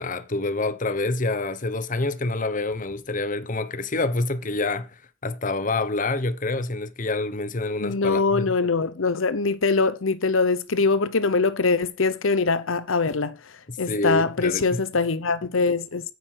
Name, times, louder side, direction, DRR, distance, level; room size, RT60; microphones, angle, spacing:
voice 1, 0.0-8.5 13.7-14.8, left 2 dB, 40° left, 1.1 m, -27 dB
voice 2, 7.8-13.3 13.8-16.0, left 4 dB, 85° left, 0.8 m, -23 dB
9.5 x 9.0 x 4.7 m
head